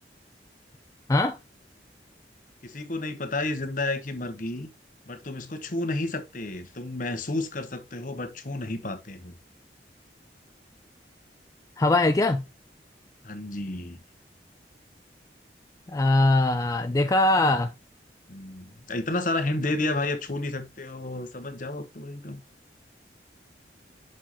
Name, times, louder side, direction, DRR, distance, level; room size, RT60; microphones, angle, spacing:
voice 1, 2.6-4.7 5.1-9.3 13.2-14.0 18.3-22.4, left 2 dB, 50° left, 1.1 m, -31 dB
voice 2, 11.8-12.4 15.9-17.7, left 2 dB, 20° left, 0.4 m, -21 dB
6.5 x 6.2 x 2.9 m
head